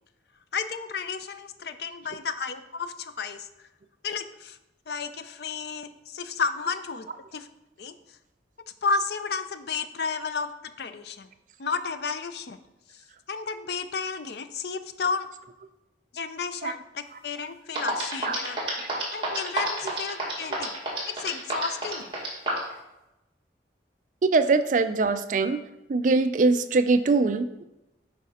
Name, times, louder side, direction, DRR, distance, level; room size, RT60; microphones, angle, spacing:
voice 1, 0.5-3.5 4.0-4.6 4.9-7.1 7.3-7.5 7.8-7.9 8.8-11.3 11.6-12.6 13.3-15.3 16.1-18.6 19.1-20.7 21.1-22.1, left 5 dB, 60° left, 11 dB, 0.5 m, -32 dB
sound 1, 17.4-17.5 17.7-22.7, right 2 dB, 25° right, 1.9 m, -28 dB
voice 2, 24.2-25.6 25.9-27.6, right 3 dB, 40° right, 11 dB, 0.4 m, -22 dB
8.4 x 4.9 x 4.2 m, 0.94 s
head